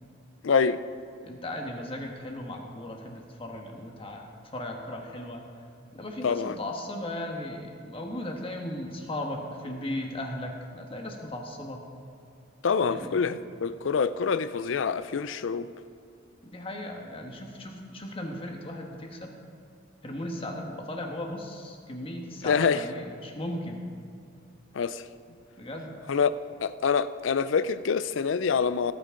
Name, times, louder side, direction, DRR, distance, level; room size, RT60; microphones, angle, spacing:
voice 1, 0.4-0.8 6.2-6.6 12.6-15.7 22.5-22.8 24.7-25.0 26.1-26.3 26.6-28.9, left 6 dB, 85° left, 0.5 m, -26 dB
voice 2, 1.2-5.4 5.9-11.8 12.8-13.2 16.4-19.3 20.0-23.9 25.6-26.0, left 1 dB, 30° left, 1.4 m, -37 dB
18.0 x 9.1 x 3.8 m
head